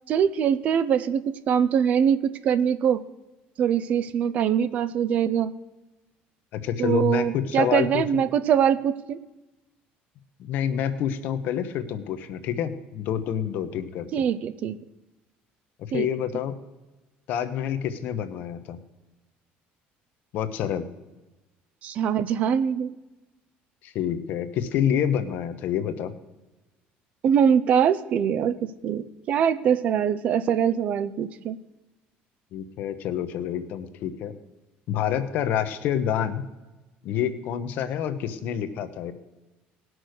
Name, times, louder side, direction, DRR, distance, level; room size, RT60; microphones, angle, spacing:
voice 1, 0.1-3.0 3.6-5.5 6.8-9.2 14.1-14.8 15.9-16.1 21.8-22.9 27.2-31.6, right 8 dB, 40° right, 15 dB, 0.5 m, -23 dB
voice 2, 6.5-8.3 10.4-14.2 15.8-16.5 17.3-18.8 20.3-20.8 23.8-26.1 32.5-34.3 34.9-36.4 37.0-39.1, left 9 dB, 50° left, 10 dB, 1.0 m, -28 dB
18.0 x 6.2 x 6.5 m, 1.1 s
cardioid pair, 175°, 4 cm